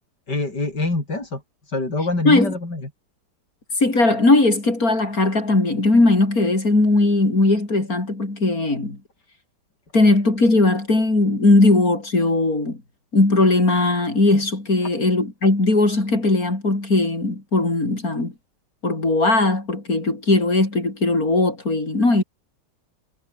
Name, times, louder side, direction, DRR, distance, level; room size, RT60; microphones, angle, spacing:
voice 1, 0.3-2.9 14.8-15.0, left 2 dB, 70° left, 7.1 m, -25 dB
voice 2, 3.8-9.0 9.9-12.8 13.1-18.3 18.8-22.2, left 2 dB, 55° left, 6.3 m, -18 dB
omnidirectional pair, 1.9 m